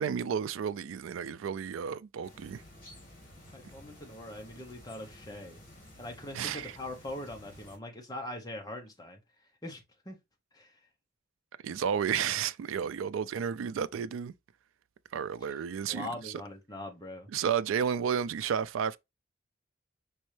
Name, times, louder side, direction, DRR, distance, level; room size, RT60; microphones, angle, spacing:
voice 1, 0.0-2.6 6.3-6.8 11.6-14.3 15.1-16.4 17.3-19.0, right 7 dB, 90° right, 0.3 m, -32 dB
sound 1, 2.2-7.8, left 1 dB, 45° left, 2.3 m, -53 dB
voice 2, 3.5-5.6 6.0-9.2 9.6-9.8 10.1-10.2 10.5-10.7 15.9-17.3, left 1 dB, 20° left, 0.8 m, -42 dB
5.2 x 3.2 x 3.2 m
head